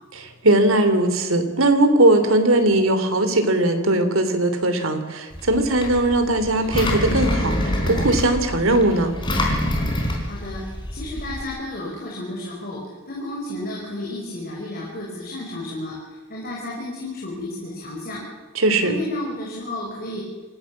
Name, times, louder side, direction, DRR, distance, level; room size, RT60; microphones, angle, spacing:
voice 1, 0.1-9.1 18.5-19.0, right 1 dB, 75° right, 8 dB, 3.1 m, -19 dB
Engine, 5.3-11.4, left 1 dB, 20° left, 4.3 m, -26 dB
voice 2, 10.2-10.6 10.9-12.8 13.1-18.2 18.8-20.2, left 1 dB, 45° left, -3 dB, 5.5 m, -32 dB
26.5 x 16.5 x 7.3 m, 1.3 s
head